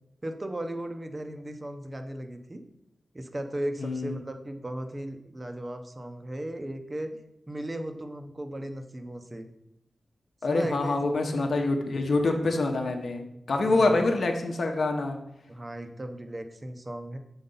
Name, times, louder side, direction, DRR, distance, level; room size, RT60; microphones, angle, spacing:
voice 1, 0.2-2.6 3.1-7.1 7.5-9.5 10.4-11.3 13.5-14.0 15.5-17.2, right 1 dB, 20° right, 6 dB, 0.6 m, -36 dB
voice 2, 3.8-4.2 10.4-15.2, left 2 dB, 55° left, 3 dB, 0.9 m, -26 dB
7.8 x 3.9 x 5.4 m, 0.83 s
wide cardioid pair, 170°, 0 cm